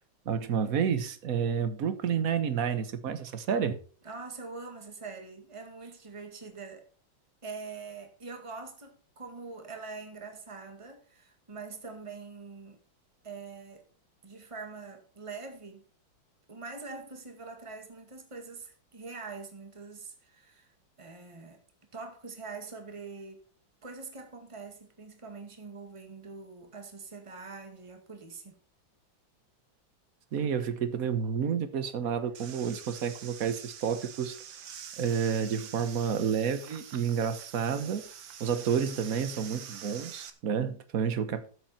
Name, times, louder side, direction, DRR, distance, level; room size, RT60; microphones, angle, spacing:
voice 1, 0.2-3.8 30.3-34.4 35.0-38.1 38.4-41.5, right 7 dB, 50° right, 1.5 m, -30 dB
voice 2, 4.0-6.8 7.4-12.8 13.2-13.9 14.2-15.8 16.5-20.7 21.0-21.6 21.9-23.5 23.8-28.6, right 4 dB, 15° right, 2.0 m, -44 dB
sound 1, 32.3-40.3, right 8 dB, 70° right, 1.8 m, -46 dB
13.0 x 8.2 x 4.3 m
omnidirectional pair, 2.2 m